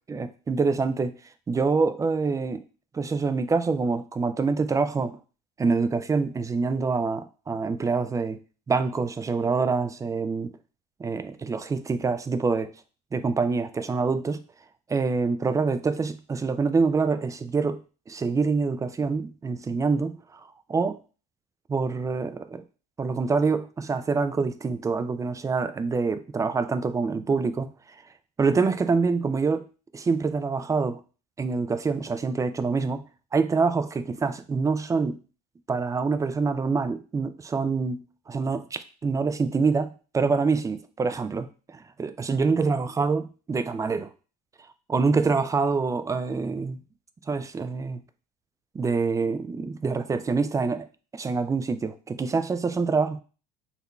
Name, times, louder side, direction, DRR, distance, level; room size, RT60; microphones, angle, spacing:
voice 1, 0.1-1.1 1.5-2.6 2.9-5.2 5.6-8.4 8.7-10.5 11.0-12.7 13.1-14.4 14.9-17.8 18.1-20.4 20.7-21.0 21.7-22.6 23.0-28.0 28.4-29.6 29.9-31.0 31.4-33.0 33.3-35.2 35.7-44.1 44.9-46.8 47.3-48.0 48.7-50.9 51.1-53.2, right 4 dB, 15° right, 11 dB, 0.3 m, -26 dB
3.9 x 3.0 x 2.3 m, 0.35 s
hypercardioid pair, 70°, 20 cm